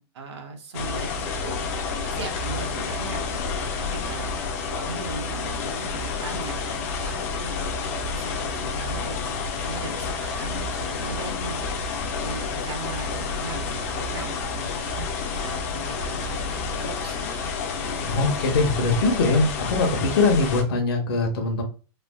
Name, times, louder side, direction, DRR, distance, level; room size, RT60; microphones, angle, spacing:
voice 1, 0.0-1.5 2.0-4.3 4.8-6.5 6.8-7.6 8.1-11.7 12.2-15.1 15.4-17.3, right 3 dB, 80° right, 3 dB, 0.9 m, -39 dB
sound 1, 0.7-20.6, left 4 dB, 35° left, 0.4 m, -29 dB
voice 2, 18.0-21.6, left 3 dB, 60° left, 4 dB, 0.8 m, -22 dB
3.2 x 2.1 x 2.2 m, 0.35 s
supercardioid pair, 170°, 14 cm